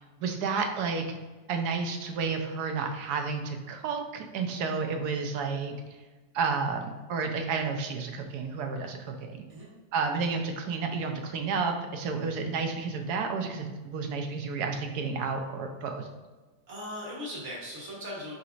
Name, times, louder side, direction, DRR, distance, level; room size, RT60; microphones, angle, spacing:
voice 1, 0.2-1.0 1.5-5.7 6.3-9.4 9.9-16.1, right 5 dB, 90° right, 5 dB, 1.1 m, -31 dB
voice 2, 16.7-18.3, left 1 dB, 50° right, -4 dB, 1.5 m, -38 dB
4.2 x 3.9 x 2.5 m, 1.3 s
omnidirectional pair, 1.6 m